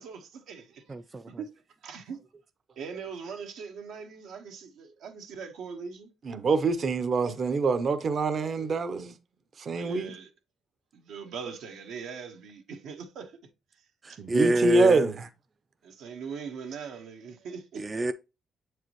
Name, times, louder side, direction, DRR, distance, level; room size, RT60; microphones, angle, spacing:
voice 1, 0.0-0.9 1.4-1.5 1.8-2.2 2.8-6.1 9.7-10.3 10.9-13.4 14.1-14.2 15.8-17.8, right 6 dB, 85° right, 1.1 m, -41 dB
voice 2, 0.9-1.2 14.0-15.1 17.8-18.1, right 2 dB, 25° right, 0.4 m, -27 dB
voice 3, 6.2-9.1 9.6-10.1 14.2-15.3, right 3 dB, 50° right, 0.8 m, -25 dB
7.3 x 4.7 x 3.0 m
cardioid pair, 90°, 0 cm